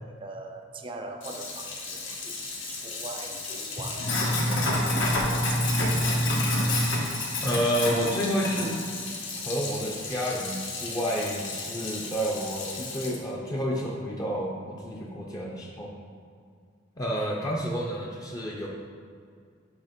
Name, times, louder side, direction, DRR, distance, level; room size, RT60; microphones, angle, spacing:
voice 1, 0.0-6.3, right 2 dB, 25° right, 4 dB, 0.5 m, -42 dB
Sink (filling or washing), 1.2-13.2, left 1 dB, 75° left, 1.4 m, -29 dB
voice 2, 7.4-8.8 9.3-15.9 17.0-18.7, equal, 20° left, -3 dB, 0.6 m, -30 dB
8.1 x 3.4 x 5.1 m, 2.2 s
head